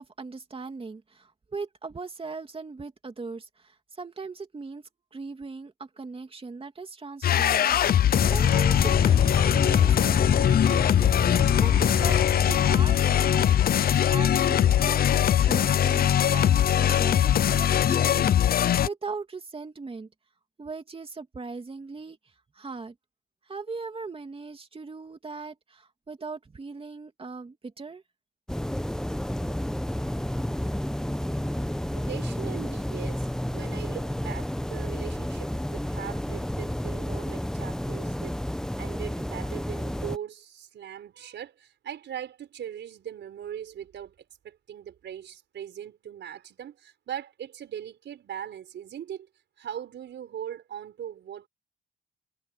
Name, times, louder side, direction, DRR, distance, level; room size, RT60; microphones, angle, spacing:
voice 1, 0.0-4.8 5.1-8.1 8.3-20.1 20.6-22.2 22.5-22.9 23.5-28.0, right 4 dB, 30° right, 2.7 m, -39 dB
sound 1, 7.2-18.9, left 10 dB, 50° left, 0.5 m, -21 dB
sound 2, 8.1-15.1, left 4 dB, 25° left, 1.0 m, -29 dB
sound 3, 28.5-40.2, equal, 5° left, 1.1 m, -31 dB
voice 2, 31.9-33.3 33.5-38.4 38.8-44.1 44.4-49.3 49.6-51.5, right 9 dB, 65° right, 5.1 m, -40 dB
cardioid pair, 90°, 20 cm